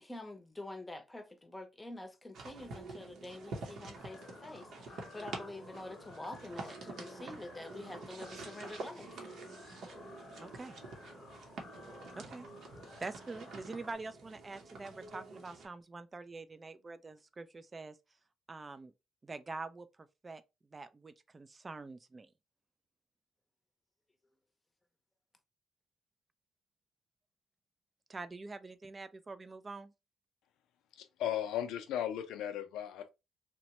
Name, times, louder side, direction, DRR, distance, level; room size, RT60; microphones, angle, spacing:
voice 1, 0.0-9.2, left 2 dB, 15° left, 0.7 m, -47 dB
sound 1, 2.3-15.7, right 3 dB, 70° right, 0.8 m, -48 dB
sound 2, 3.9-13.9, left 4 dB, 60° left, 0.7 m, -55 dB
voice 2, 10.4-10.7 12.1-12.5 13.0-18.0 18.5-18.9 19.2-20.4 20.7-22.3 28.1-29.9, right 3 dB, 25° right, 0.3 m, -45 dB
voice 3, 31.0-33.1, left 10 dB, 90° left, 0.4 m, -36 dB
2.9 x 2.1 x 2.9 m
cardioid pair, 90°, 0 cm